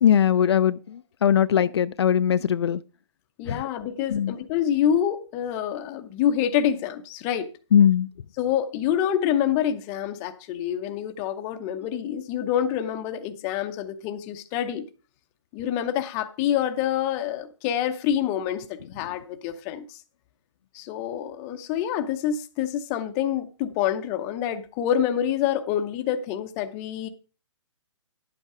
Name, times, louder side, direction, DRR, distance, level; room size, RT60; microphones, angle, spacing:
voice 1, 0.0-2.8 3.5-3.6 4.1-4.3 7.7-8.1, left 9 dB, 55° left, 0.4 m, -20 dB
voice 2, 3.4-7.5 8.4-14.8 15.5-20.0 20.7-27.1, left 10 dB, 15° left, 0.6 m, -27 dB
11.0 x 8.1 x 4.8 m
hypercardioid pair, 165°, 16 cm